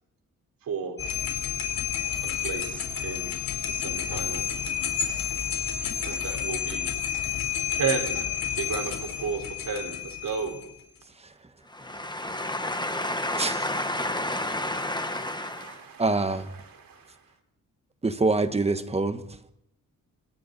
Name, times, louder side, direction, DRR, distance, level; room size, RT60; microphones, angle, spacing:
voice 1, 0.6-0.9 2.4-3.3 3.7-4.4 6.0-6.9 7.7-8.3 8.6-8.9 9.2-10.6 14.0-14.1 15.0-16.1 16.6-17.2, right 6 dB, 85° right, 4.6 m, -33 dB
sound 1, 1.0-10.7, left 8 dB, 85° left, 4.3 m, -30 dB
voice 2, 11.7-15.8, left 1 dB, 15° left, 1.3 m, -30 dB
voice 3, 16.0-16.5 18.0-19.2, right 3 dB, 20° right, 1.3 m, -24 dB
28.0 x 27.0 x 4.2 m
wide cardioid pair, 170°, 33 cm